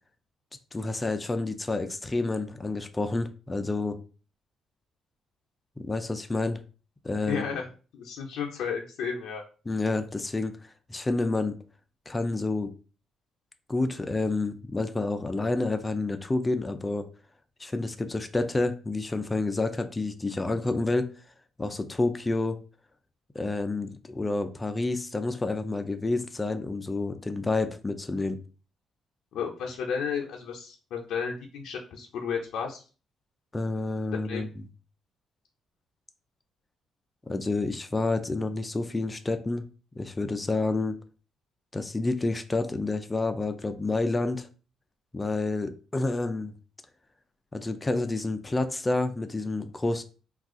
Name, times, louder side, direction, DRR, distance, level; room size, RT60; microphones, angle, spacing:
voice 1, 0.7-4.0 5.8-6.6 7.0-7.4 9.7-10.6 10.9-11.6 12.1-12.7 13.7-17.1 17.6-21.1 21.6-22.6 23.3-28.4 33.5-34.5 37.3-39.6 40.0-41.0 41.7-44.5 45.1-46.5 47.5-50.0, left 2 dB, 20° left, 0.4 m, -29 dB
voice 2, 7.3-7.7 7.9-9.4 29.3-32.8 34.1-34.5, left 6 dB, 80° left, 0.5 m, -33 dB
2.4 x 2.3 x 3.6 m
cardioid pair, 90°, 0 cm